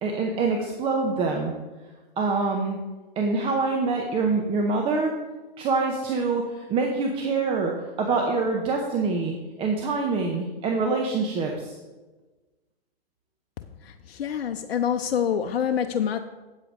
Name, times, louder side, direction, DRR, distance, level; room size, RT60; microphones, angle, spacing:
voice 1, 0.0-1.5 2.2-2.8 3.2-5.2 5.6-11.8, right 4 dB, 20° right, 1 dB, 0.8 m, -25 dB
voice 2, 13.8-16.2, left 8 dB, 80° left, 6 dB, 0.7 m, -26 dB
8.3 x 7.8 x 4.8 m, 1.2 s
hypercardioid pair, 140°, 30 cm